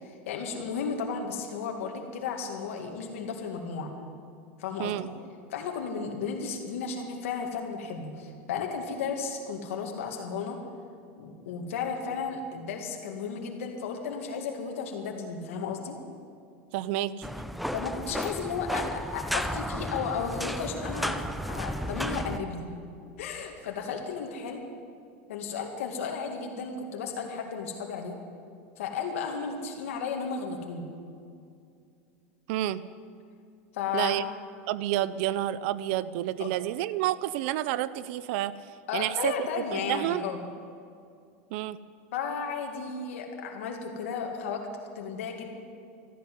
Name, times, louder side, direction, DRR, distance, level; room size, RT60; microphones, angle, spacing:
voice 1, 0.0-3.9 4.6-5.0 5.5-10.6 11.2-16.0 17.7-21.2 21.5-22.7 23.2-24.6 25.3-28.2 28.8-30.9 33.7-34.3 36.4-36.5 38.9-40.4 42.1-44.7 45.0-45.5, left 5 dB, 85° left, 2 dB, 2.1 m, -34 dB
voice 2, 16.7-17.3 32.5-32.8 33.9-34.3 34.7-38.5 38.9-40.2 41.5-41.8, right 14 dB, 65° right, 17 dB, 0.5 m, -29 dB
sound 1, 17.2-22.4, equal, ahead, 0.6 m, -33 dB
13.5 x 11.0 x 9.4 m, 2.3 s
supercardioid pair, 135°, 7 cm